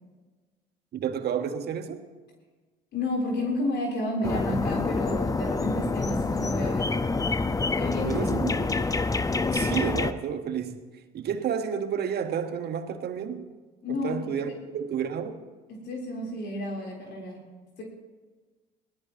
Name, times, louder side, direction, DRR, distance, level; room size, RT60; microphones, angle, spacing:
voice 1, 0.9-2.0 8.0-8.7 9.4-10.8 11.1-13.5 13.9-15.4, right 8 dB, 50° right, 1.6 m, -30 dB
voice 2, 2.9-7.0 7.7-8.3 13.8-14.2 14.4-14.5 15.7-17.4 17.8-17.9, left 1 dB, 55° left, 3.9 m, -31 dB
sound 1, 4.2-10.1, left 3 dB, 15° left, 0.8 m, -27 dB
22.0 x 17.5 x 3.1 m
hypercardioid pair, 60°, 21 cm